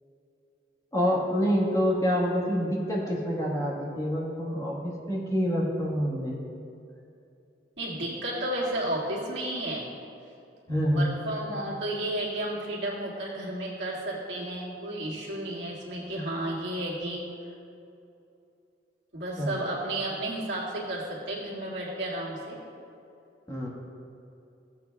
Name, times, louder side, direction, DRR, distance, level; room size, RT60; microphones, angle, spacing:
voice 1, 0.9-6.4 10.7-11.1 19.4-19.5 23.5-23.7, equal, 20° left, -4 dB, 1.4 m, -27 dB
voice 2, 7.8-9.9 10.9-17.2 19.1-22.6, right 1 dB, 80° right, -5 dB, 2.0 m, -32 dB
15.0 x 8.1 x 2.3 m, 2.7 s
head